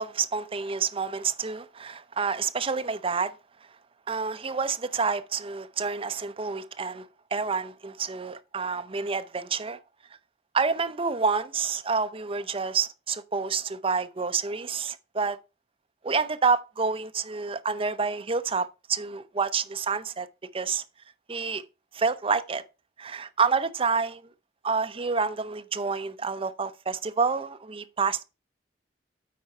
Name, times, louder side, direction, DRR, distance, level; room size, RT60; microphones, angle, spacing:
voice 1, 0.0-3.3 4.1-7.1 7.3-9.8 10.5-15.4 16.0-20.3 20.5-20.8 21.3-21.6 21.9-22.6 23.0-24.2 24.6-28.2, right 5 dB, 30° right, 0.6 m, -28 dB
8.6 x 4.4 x 5.4 m
head